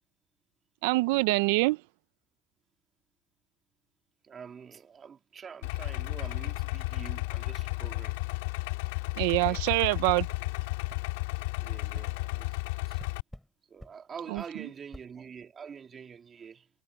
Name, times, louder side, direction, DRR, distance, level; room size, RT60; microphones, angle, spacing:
voice 1, 0.8-1.8 9.2-10.3 14.3-14.4, right 23 dB, 75° right, 0.3 m, -25 dB
voice 2, 4.2-8.2 9.4-9.6 11.6-13.0 13.7-16.7, right 6 dB, 25° right, 2.4 m, -46 dB
Idling, 5.6-13.2, left 23 dB, 80° left, 1.8 m, -33 dB
Pillow Punch, 10.9-11.1 11.9-12.1 13.0-13.5 13.8-14.0 14.4-14.5 14.9-15.1, equal, ahead, 3.3 m, -47 dB
supercardioid pair, 130°, 0 cm